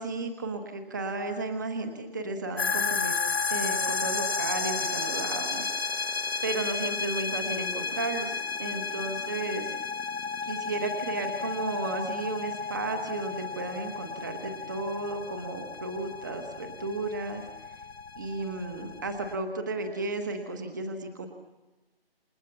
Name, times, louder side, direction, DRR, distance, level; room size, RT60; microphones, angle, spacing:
voice 1, 0.0-3.2 3.5-5.7 6.4-9.7 10.4-17.7 18.2-21.3, right 2 dB, 20° right, 6 dB, 1.4 m, -34 dB
sound 1, 2.6-19.4, left 5 dB, 80° left, 1.1 m, -33 dB
28.5 x 28.0 x 7.1 m, 1.2 s
figure-of-eight pair, 175°, 30 cm